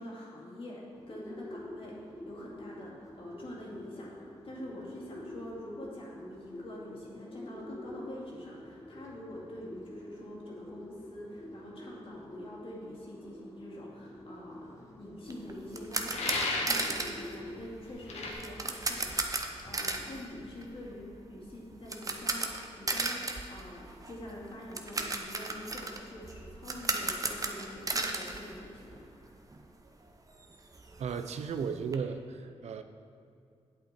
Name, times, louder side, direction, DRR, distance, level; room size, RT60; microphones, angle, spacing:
voice 1, 0.0-1.9 2.3-29.4, left 1 dB, 55° left, -4 dB, 2.4 m, -45 dB
Bird, 0.9-17.9, left 1 dB, 30° left, 1.8 m, -48 dB
sound 1, 15.3-29.3 29.5-29.7 30.1-30.2 30.4-32.0, right 3 dB, 30° right, 0.8 m, -36 dB
sound 2, 16.1-16.9 18.1-18.3, left 2 dB, 80° left, 1.4 m, -32 dB
voice 2, 31.0-32.8, right 6 dB, 80° right, 8 dB, 0.5 m, -35 dB
8.7 x 8.0 x 4.3 m, 2.4 s
cardioid pair, 75°, 11 cm